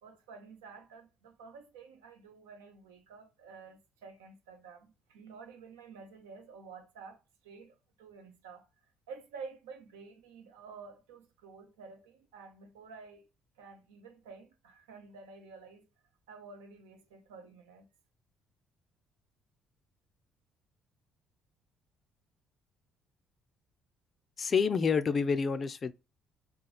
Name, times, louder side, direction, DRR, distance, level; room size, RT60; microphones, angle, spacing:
voice 1, 0.0-7.2 7.4-8.7 9.1-13.3 13.6-15.8 16.3-17.9, right 5 dB, 80° right, 0.5 m, -50 dB
voice 2, 24.4-25.9, left 5 dB, 40° left, 0.3 m, -28 dB
2.9 x 2.3 x 2.2 m
hypercardioid pair, 55°, 0 cm